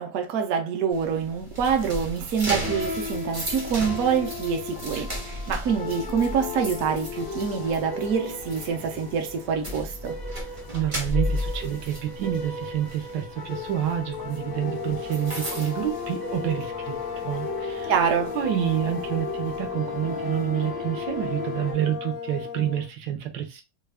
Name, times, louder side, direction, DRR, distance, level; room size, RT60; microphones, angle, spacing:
voice 1, 0.0-10.1 17.9-18.3, right 6 dB, 65° right, 1.0 m, -26 dB
sound 1, 0.9-16.8 17.2-17.5 17.9-19.6, equal, 30° right, 0.6 m, -35 dB
sound 2, 2.5-21.7, left 3 dB, 25° left, 0.4 m, -36 dB
voice 2, 10.7-17.9 18.3-23.6, right 11 dB, 80° right, 1.3 m, -28 dB
sound 3, 14.2-22.9, left 7 dB, 70° left, 0.8 m, -36 dB
3.2 x 2.3 x 3.3 m
omnidirectional pair, 1.9 m